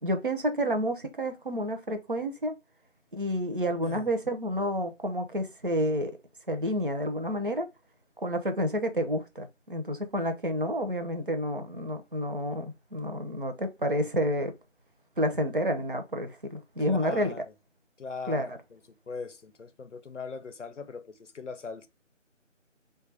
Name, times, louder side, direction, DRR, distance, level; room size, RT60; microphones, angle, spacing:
voice 1, 0.0-2.5 3.1-6.1 6.5-7.7 8.2-14.5 15.2-17.3 18.3-18.6, equal, 45° right, 0.5 m, -29 dB
voice 2, 16.8-17.5 18.0-18.8 19.1-21.9, left 4 dB, 70° left, 0.6 m, -40 dB
3.1 x 2.3 x 3.2 m
figure-of-eight pair, 165°, 38 cm